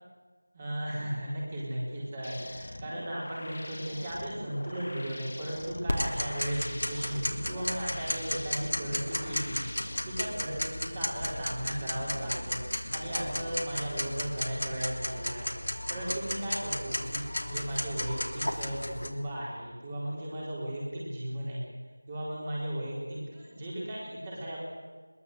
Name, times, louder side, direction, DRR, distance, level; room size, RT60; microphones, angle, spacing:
voice 1, 0.5-9.6 10.0-21.6 22.1-24.6, right 1 dB, 20° right, -5 dB, 4.2 m, -36 dB
sound 1, 2.2-10.0, left 1 dB, 40° left, 1.7 m, -44 dB
Tick-tock, 5.9-19.1, left 1 dB, 75° left, 3.2 m, -34 dB
21.5 x 20.5 x 8.0 m, 1.4 s
figure-of-eight pair, 175°, 0 cm